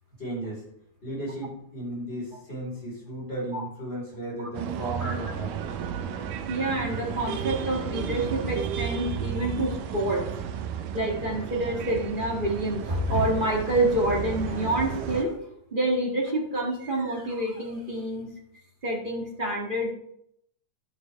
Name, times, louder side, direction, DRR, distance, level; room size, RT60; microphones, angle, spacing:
voice 1, 0.2-0.6 1.0-5.8, right 1 dB, 20° left, -3 dB, 4.8 m, -35 dB
sound 1, 4.5-15.2, right 8 dB, 90° right, 2.5 m, -33 dB
voice 2, 6.5-10.2 10.9-15.4 15.7-18.3 18.8-19.9, right 1 dB, 35° right, -2 dB, 0.8 m, -27 dB
11.5 x 9.5 x 3.6 m, 0.73 s
omnidirectional pair, 3.8 m